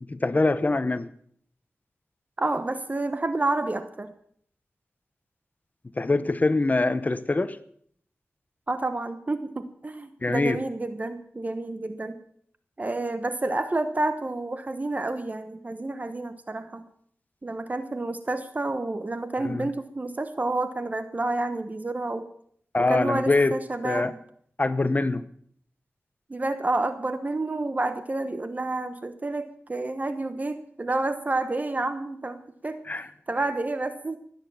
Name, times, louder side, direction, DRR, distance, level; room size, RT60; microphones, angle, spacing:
voice 1, 0.1-1.1 6.0-7.6 10.2-10.6 19.4-19.7 22.7-23.5 23.8-24.1 24.6-25.3 32.9-33.1, left 2 dB, 35° left, 13 dB, 0.9 m, -24 dB
voice 2, 2.4-4.1 8.7-12.2 12.8-16.8 17.4-22.3 22.9-24.2 26.3-32.8 33.3-34.2, right 2 dB, 35° right, 10 dB, 1.1 m, -29 dB
17.0 x 10.0 x 7.0 m, 0.63 s
wide cardioid pair, 75°, 5 cm